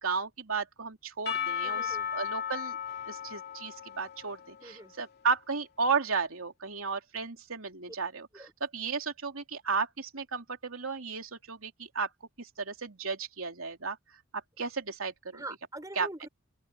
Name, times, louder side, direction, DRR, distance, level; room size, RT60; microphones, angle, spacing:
voice 1, 0.0-2.8 3.1-12.1 12.4-14.0 14.6-15.4 16.0-16.1, right 5 dB, 85° right, 3.1 m, -34 dB
Percussion / Church bell, 1.3-5.1, left 8 dB, 50° left, 3.2 m, -36 dB
voice 2, 1.6-2.1 4.6-4.9 7.9-8.0 8.3-8.5 15.3-16.3, right 2 dB, 15° right, 5.3 m, -43 dB
open air
head